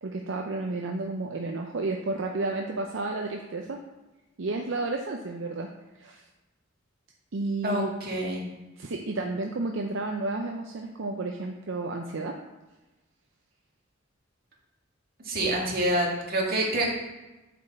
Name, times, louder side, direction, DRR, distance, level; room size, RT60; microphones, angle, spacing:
voice 1, 0.0-3.8 4.4-5.7 6.0-6.2 7.3-7.9 8.8-12.4, right 2 dB, 75° right, 2 dB, 0.6 m, -31 dB
voice 2, 7.6-8.4 15.3-16.9, right 1 dB, 50° right, -3 dB, 1.9 m, -27 dB
8.1 x 4.4 x 4.1 m, 1.1 s
head